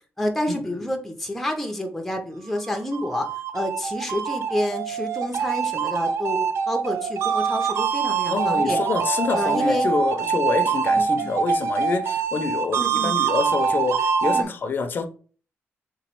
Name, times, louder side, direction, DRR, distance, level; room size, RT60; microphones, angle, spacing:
voice 1, 0.2-3.2 3.5-8.8 9.3-9.9 10.9-11.4 12.8-13.2 14.3-14.5, left 1 dB, 5° left, 0.6 m, -29 dB
sound 1, 2.7-14.4, right 6 dB, 70° right, 0.4 m, -24 dB
voice 2, 8.3-15.0, left 4 dB, 45° left, 0.6 m, -27 dB
3.4 x 3.0 x 4.4 m
cardioid pair, 130°, 5 cm